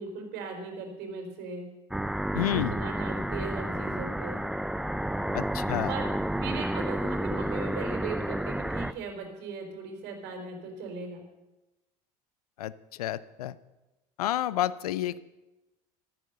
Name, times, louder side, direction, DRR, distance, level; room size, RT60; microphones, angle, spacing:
voice 1, 0.0-1.7 2.5-4.4 5.9-6.1 6.4-11.2, right 4 dB, 60° right, 4 dB, 4.2 m, -38 dB
sound 1, 1.9-8.9, right 1 dB, 5° right, 0.7 m, -31 dB
voice 2, 2.3-2.7 5.3-5.9 12.6-12.7 13.0-13.6 14.2-15.2, left 13 dB, 80° left, 18 dB, 0.6 m, -29 dB
13.5 x 12.5 x 6.7 m, 1.0 s
hypercardioid pair, 65°, 19 cm